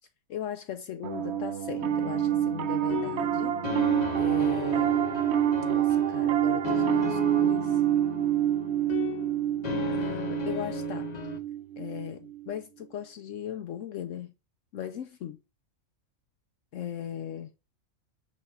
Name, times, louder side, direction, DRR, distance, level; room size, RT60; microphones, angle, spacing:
voice 1, 0.3-3.5 4.2-5.0 5.6-7.8 9.9-11.1 11.8-14.3 14.7-15.4 16.7-17.5, left 10 dB, 70° left, 1.0 m, -38 dB
Piano, 1.0-12.5, right 11 dB, 60° right, 0.8 m, -27 dB
sound 1, 1.8-11.4, left 6 dB, 35° left, 0.9 m, -36 dB
5.6 x 5.2 x 4.7 m
omnidirectional pair, 1.4 m